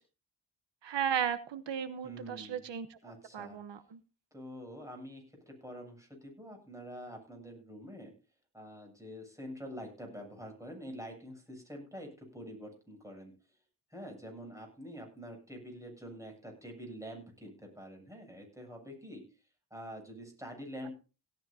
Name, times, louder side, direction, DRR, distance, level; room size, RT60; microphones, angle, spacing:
voice 1, 0.8-3.0 3.3-4.0, right 8 dB, 85° right, 11 dB, 1.2 m, -35 dB
voice 2, 2.0-2.7 3.0-3.6 4.3-8.1 8.5-13.3 13.9-19.2 19.7-20.9, equal, 5° right, 2 dB, 7.9 m, -46 dB
17.5 x 13.0 x 2.8 m, 0.32 s
wide cardioid pair, 105°, 42 cm